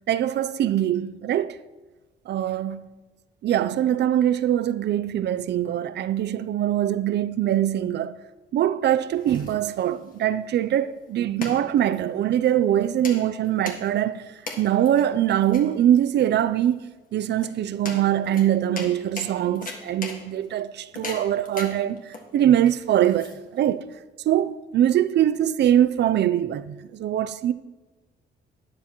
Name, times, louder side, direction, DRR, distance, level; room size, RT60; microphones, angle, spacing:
voice 1, 0.1-1.6 2.3-2.8 3.4-8.2 8.5-14.2 14.6-16.8 17.1-23.9 24.2-27.5, right 11 dB, 60° right, 0.4 m, -23 dB
sound 1, 8.8-23.8, left 3 dB, 45° left, 1.7 m, -40 dB
12.5 x 9.7 x 3.0 m
cardioid pair, 90°, 20 cm